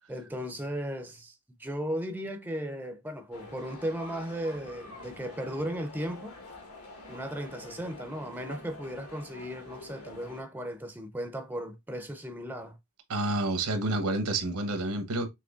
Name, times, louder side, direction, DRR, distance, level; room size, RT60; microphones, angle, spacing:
voice 1, 0.1-6.4 7.1-12.8, equal, 10° right, 0.5 m, -36 dB
sound 1, 3.3-10.4, left 2 dB, 75° left, 1.9 m, -47 dB
voice 2, 13.1-15.3, right 2 dB, 80° right, 1.0 m, -29 dB
6.0 x 3.1 x 2.4 m
head